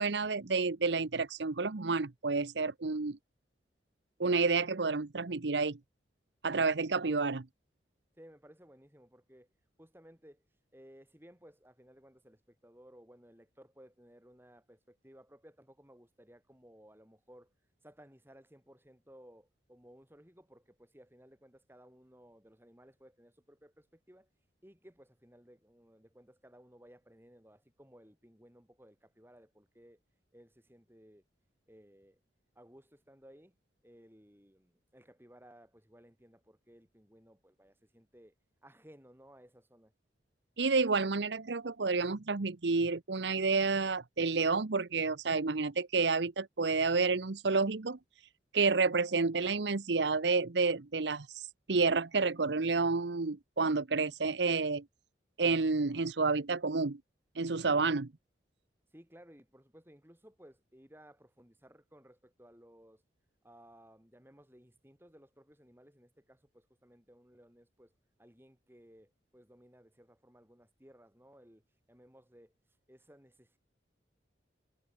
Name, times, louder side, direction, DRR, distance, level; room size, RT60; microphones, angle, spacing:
voice 1, 0.0-3.2 4.2-5.8 6.4-7.5 40.6-48.0 48.5-54.8 55.4-57.0 57.4-58.1, right 4 dB, 70° right, 0.9 m, -30 dB
voice 2, 8.2-9.5 9.8-10.4 10.7-17.5 17.8-24.3 24.6-30.0 30.3-31.2 31.7-32.2 32.6-33.5 33.8-38.3 38.6-39.9 58.9-63.0 63.4-67.9 68.2-71.6 71.9-72.5 72.9-73.6, equal, 10° right, 7.8 m, -59 dB
head